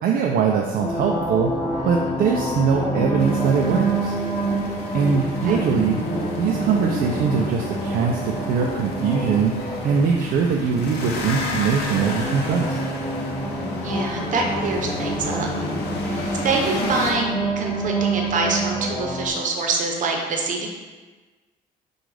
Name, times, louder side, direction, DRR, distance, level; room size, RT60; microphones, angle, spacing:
voice 1, 0.0-1.5 1.8-4.1 4.9-6.0 6.4-9.5 9.8-12.8, right 6 dB, 65° right, 0 dB, 0.5 m, -22 dB
sound 1, 0.8-19.3, right 1 dB, 45° left, 0.9 m, -27 dB
sound 2, 3.2-17.1, left 3 dB, 80° left, 0.7 m, -33 dB
voice 2, 13.8-15.5 16.1-20.7, right 3 dB, 50° right, 1 dB, 0.8 m, -25 dB
6.1 x 2.4 x 3.3 m, 1.3 s
cardioid pair, 110°, 17 cm